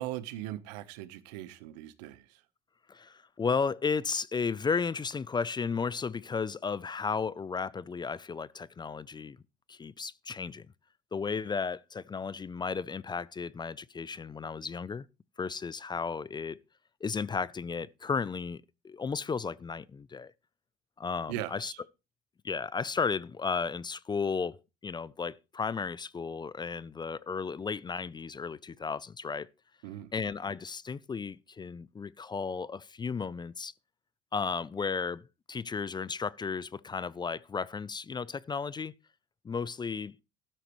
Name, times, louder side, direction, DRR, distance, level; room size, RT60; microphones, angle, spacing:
voice 1, 0.0-2.4 21.3-21.8 29.8-30.1, right 14 dB, 85° right, 1.1 m, -39 dB
voice 2, 2.9-9.4 9.7-10.7 11.1-15.1 15.4-16.6 17.0-20.3 21.0-21.7 22.4-29.5 30.1-33.7 34.3-38.9 39.4-40.2, left 5 dB, 20° left, 0.5 m, -34 dB
13.0 x 12.0 x 3.2 m
supercardioid pair, 90°, 21 cm